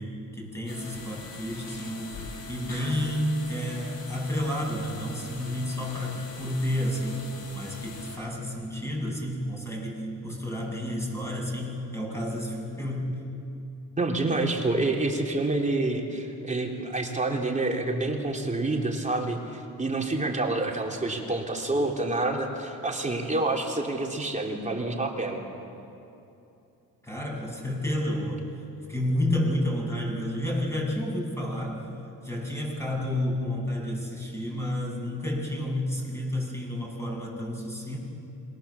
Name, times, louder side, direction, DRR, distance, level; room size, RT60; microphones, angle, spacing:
voice 1, 0.0-2.1 2.5-7.2 7.5-13.1 27.0-28.5 28.9-31.8 32.2-38.0, left 1 dB, 5° left, -2 dB, 7.6 m, -30 dB
sound 1, 0.7-8.2, left 3 dB, 80° left, 5.5 m, -42 dB
voice 2, 14.0-25.4, right 2 dB, 20° right, 0 dB, 3.6 m, -28 dB
27.5 x 23.0 x 7.3 m, 2.8 s
cardioid pair, 100°, 36 cm